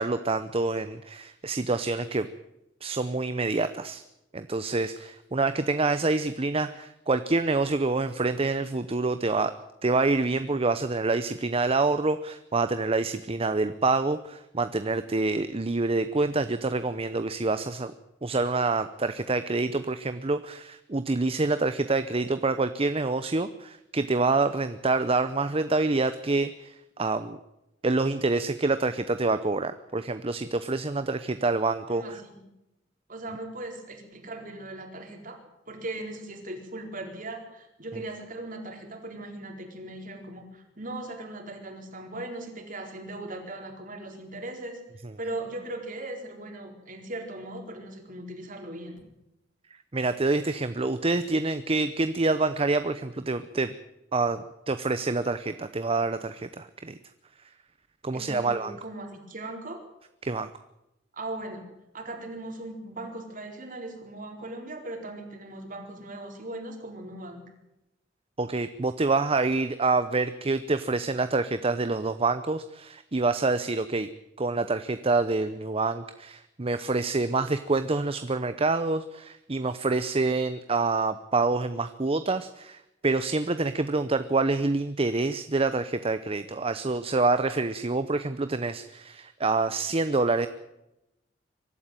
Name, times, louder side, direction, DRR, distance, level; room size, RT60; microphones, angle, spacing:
voice 1, 0.0-2.3 2.8-4.0 4.3-9.5 9.8-17.9 18.2-27.4 27.8-32.2 49.9-53.7 54.1-57.0 58.0-58.7 60.2-60.5 68.4-74.1 74.4-90.5, right 3 dB, 30° right, 11 dB, 0.7 m, -27 dB
voice 2, 31.9-32.5 33.1-35.4 35.7-44.8 45.2-49.0 58.1-59.8 61.1-61.7 61.9-67.4, right 2 dB, 45° right, 3 dB, 4.3 m, -39 dB
23.5 x 12.5 x 9.0 m, 0.90 s
head